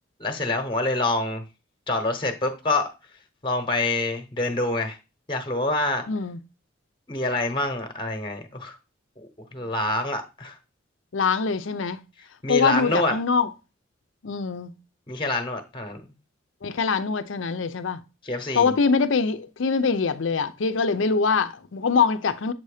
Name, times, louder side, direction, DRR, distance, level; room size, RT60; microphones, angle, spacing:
voice 1, 0.2-1.4 1.9-2.9 3.4-5.0 5.3-6.0 7.1-8.8 9.2-10.6 12.4-13.2 15.1-16.0 18.2-18.7, left 2 dB, 25° left, 0.9 m, -26 dB
voice 2, 6.1-6.4 11.1-12.0 12.5-13.5 14.2-14.7 16.6-18.0 18.5-22.5, left 5 dB, 75° left, 0.6 m, -23 dB
7.4 x 2.7 x 4.9 m
head